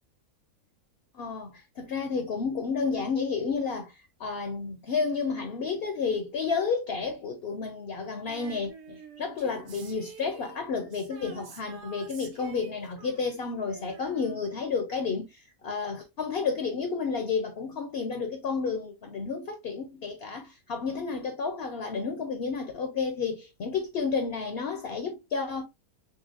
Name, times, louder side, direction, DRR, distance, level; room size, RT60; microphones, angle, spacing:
voice 1, 1.1-25.6, left 5 dB, 65° left, 0.6 m, -31 dB
Female singing, 8.3-14.9 15.2-15.3, right 4 dB, 55° right, 0.8 m, -48 dB
3.9 x 3.4 x 2.4 m
omnidirectional pair, 1.6 m